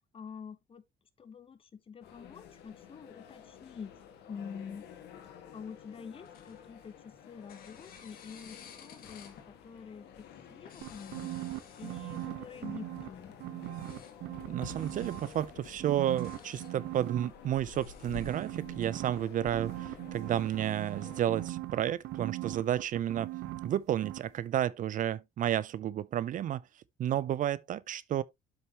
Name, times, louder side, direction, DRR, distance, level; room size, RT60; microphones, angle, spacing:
voice 1, 0.1-0.8 1.2-3.9 4.3-4.9 5.5-11.3 11.8-13.3, left 6 dB, 35° left, 1.0 m, -47 dB
sound 1, 2.0-21.5, left 7 dB, 75° left, 1.8 m, -51 dB
sound 2, 6.1-7.1 7.5-9.5 10.5-12.5 13.6-14.2 14.8-15.5 16.0-16.8 17.7-19.2, left 8 dB, 60° left, 2.1 m, -55 dB
sound 3, 10.8-13.1 13.4-15.5 15.8-17.3 18.1-23.8 24.0-24.2, right 16 dB, 80° right, 1.0 m, -39 dB
voice 2, 14.5-23.3 23.6-26.6 27.0-28.2, right 11 dB, 50° right, 0.5 m, -31 dB
7.7 x 6.6 x 2.9 m
cardioid pair, 110°, 17 cm